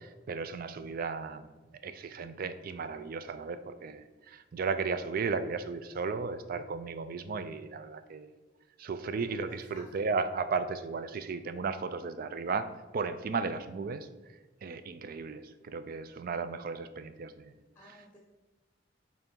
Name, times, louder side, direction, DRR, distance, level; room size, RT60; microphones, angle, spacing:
voice 1, 0.0-1.5 1.8-8.3 8.8-14.1 14.6-17.5, right 4 dB, 50° right, 11 dB, 0.4 m, -35 dB
voice 2, 9.1-10.1 17.7-18.2, left 1 dB, 10° left, -1 dB, 0.8 m, -55 dB
5.6 x 3.9 x 4.5 m, 1.3 s
head